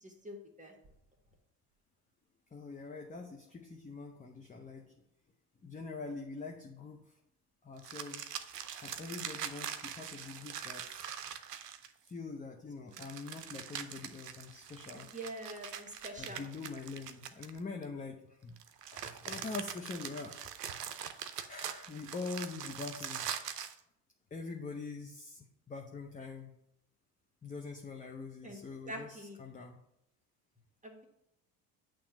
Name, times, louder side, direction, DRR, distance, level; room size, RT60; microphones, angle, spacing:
voice 1, 0.0-0.7 14.9-16.5 28.4-28.6 28.9-29.4 30.8-31.0, right 1 dB, 15° right, 1 dB, 1.4 m, -45 dB
voice 2, 2.5-4.9 5.6-7.1 7.6-8.3 8.8-11.0 12.0-15.1 16.2-18.6 18.9-20.4 21.5-23.4 24.3-26.5 27.4-29.8, left 4 dB, 15° left, 2 dB, 0.7 m, -44 dB
sound 1, 7.8-12.1 12.9-17.8 18.6-23.8, right 9 dB, 85° right, 0.6 m, -43 dB
8.5 x 3.1 x 5.9 m, 0.76 s
figure-of-eight pair, 60°, 47 cm